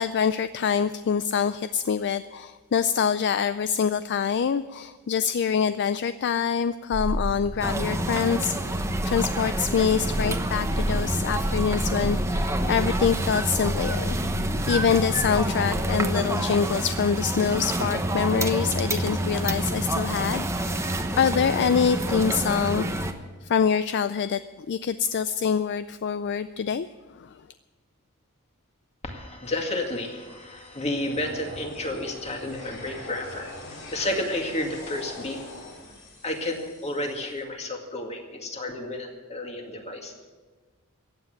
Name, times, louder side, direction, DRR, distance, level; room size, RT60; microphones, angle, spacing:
voice 1, 0.0-14.2 14.7-22.9 23.4-24.4 24.7-26.9 27.2-27.3, left 7 dB, 50° left, 13 dB, 0.4 m, -25 dB
sound 1, 6.9-16.3, equal, 90° right, 3.0 m, -32 dB
sound 2, 7.6-23.1, right 1 dB, 15° right, 0.9 m, -28 dB
voice 2, 29.0-35.4 36.2-40.1, left 1 dB, 30° left, 3 dB, 2.2 m, -31 dB
sound 3, 29.4-37.4, left 1 dB, 80° left, 4.4 m, -43 dB
15.5 x 8.9 x 9.1 m, 1.4 s
head